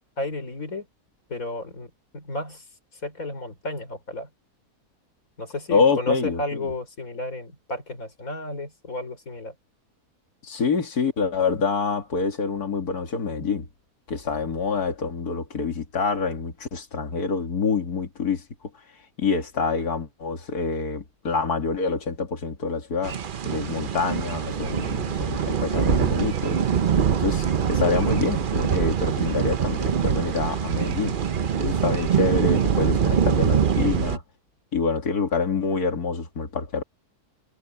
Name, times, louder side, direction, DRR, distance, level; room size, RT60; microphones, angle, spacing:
voice 1, 0.2-0.9 1.3-2.6 3.0-4.3 5.4-9.5, left 2 dB, 60° left, 5.2 m, -33 dB
voice 2, 5.7-6.6 10.4-13.7 14.1-18.4 19.2-23.2 23.4-26.6 27.2-31.2 31.6-34.2 34.7-36.8, left 5 dB, 80° left, 2.8 m, -26 dB
sound 1, 23.0-34.2, right 7 dB, 45° right, 0.7 m, -24 dB
omnidirectional pair, 1.6 m